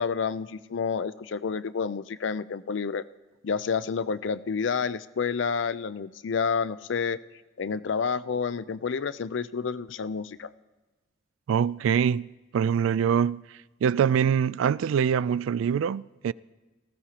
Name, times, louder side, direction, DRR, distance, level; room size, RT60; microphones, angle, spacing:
voice 1, 0.0-3.0 3.4-7.2 7.6-10.5, left 5 dB, 70° left, 0.4 m, -29 dB
voice 2, 11.5-13.5 13.8-16.3, right 7 dB, 90° right, 0.3 m, -24 dB
18.5 x 15.0 x 2.9 m
head